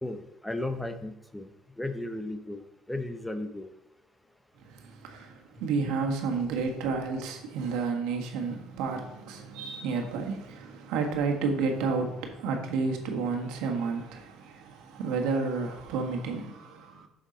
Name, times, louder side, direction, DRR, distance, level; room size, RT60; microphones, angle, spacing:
voice 1, 0.0-1.5 1.8-2.6 2.9-3.7, left 1 dB, 5° left, 0.7 m, -35 dB
voice 2, 4.6-17.1, right 4 dB, 80° right, 1.4 m, -31 dB
7.2 x 6.5 x 3.9 m
supercardioid pair, 90°, 0 cm